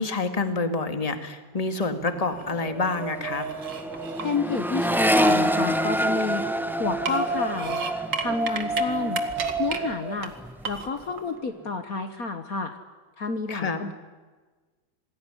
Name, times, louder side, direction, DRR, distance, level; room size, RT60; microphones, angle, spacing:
voice 1, 0.0-3.5 13.5-13.8, left 3 dB, 20° left, 8 dB, 1.9 m, -27 dB
sound 1, 1.8-2.5 2.9-4.4 4.9-6.5 6.9-8.8 9.1-9.8 10.2-10.3 10.6-11.2, right 5 dB, 70° right, 2.5 m, -34 dB
Accelerating revving vroom, 1.9-2.2 2.4-10.0 10.3-10.9, equal, ahead, 0.5 m, -27 dB
Wind, 2.3-10.2, right 3 dB, 35° right, 2.7 m, -32 dB
voice 2, 4.2-7.8 8.2-9.2 9.6-10.3 10.6-12.8 13.2-13.9, left 4 dB, 50° left, 8 dB, 1.7 m, -30 dB
27.0 x 20.0 x 9.9 m, 1.3 s
omnidirectional pair, 2.0 m